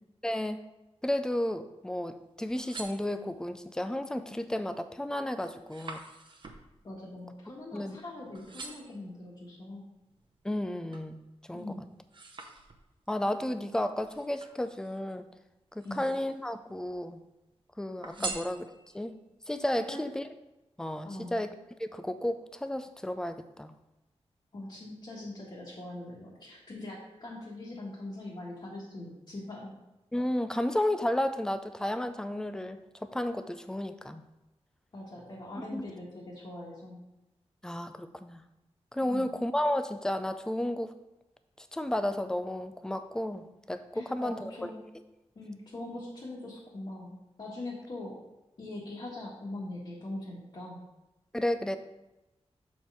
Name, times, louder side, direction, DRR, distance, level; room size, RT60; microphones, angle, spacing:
voice 1, 0.2-0.6 1.0-6.0 7.7-8.0 10.4-11.7 13.1-15.3 15.7-17.2 17.8-18.7 18.9-19.1 19.5-20.2 20.8-21.5 21.8-23.8 30.1-34.2 35.7-35.8 37.6-38.4 38.9-40.9 41.6-44.4 51.3-51.8, left 1 dB, 5° left, 10 dB, 0.4 m, -32 dB
sound 1, 2.3-3.6 4.2-4.6 4.9-8.0 8.3-9.0 9.7-11.1 11.6-13.1 14.0-15.1 15.7-16.5 16.8-17.5 18.0-19.1 19.6-19.7, right 3 dB, 45° right, 0.8 m, -45 dB
voice 2, 6.8-9.9 11.5-11.8 15.8-16.0 18.2-18.4 19.9-20.0 21.0-21.4 24.5-29.8 34.9-37.0 39.0-39.3 43.9-44.8 45.3-48.2 48.6-50.9, left 2 dB, 50° left, -6 dB, 1.5 m, -42 dB
7.0 x 4.4 x 4.7 m, 0.98 s
wide cardioid pair, 130°, 11 cm